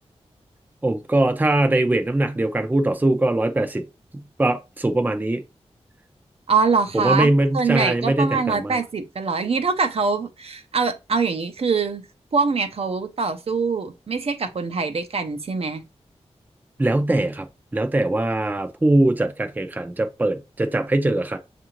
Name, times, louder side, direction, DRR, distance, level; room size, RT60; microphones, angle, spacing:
voice 1, 0.8-3.8 4.1-5.4 6.9-8.8 16.8-17.5 17.7-21.4, right 1 dB, 15° right, 0.5 m, -21 dB
voice 2, 6.5-7.3 7.5-12.0 12.3-15.8, right 4 dB, 60° right, 0.6 m, -23 dB
6.5 x 2.5 x 3.0 m
wide cardioid pair, 95°, 11 cm